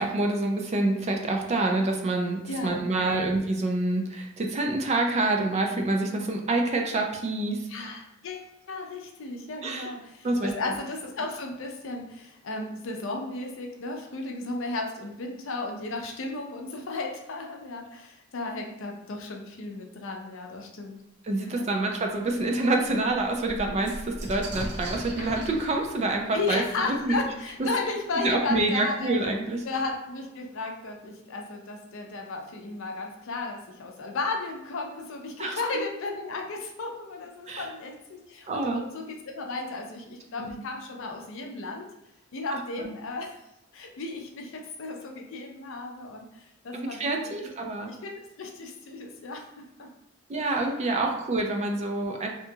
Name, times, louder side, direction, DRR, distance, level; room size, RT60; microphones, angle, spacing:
voice 1, 0.0-7.9 9.6-9.9 10.2-10.5 21.3-27.2 28.2-29.7 35.4-35.6 37.5-37.7 38.5-38.8 40.4-40.6 42.5-42.9 46.7-47.9 50.3-52.3, right 2 dB, 30° right, 2 dB, 0.4 m, -27 dB
voice 2, 2.5-3.3 7.7-21.0 21.4-21.7 26.3-29.1 29.6-41.9 42.3-43.4 43.7-47.3 47.9-48.1 48.4-49.5 49.8-49.9 50.4-50.6 51.4-51.5, left 3 dB, 65° left, 2 dB, 0.5 m, -34 dB
sound 1, 21.8-21.9 22.3-22.4 22.7-28.3 29.2-29.3 29.6-30.2, right 1 dB, 55° right, 0.9 m, -40 dB
2.8 x 2.3 x 2.7 m, 0.91 s
head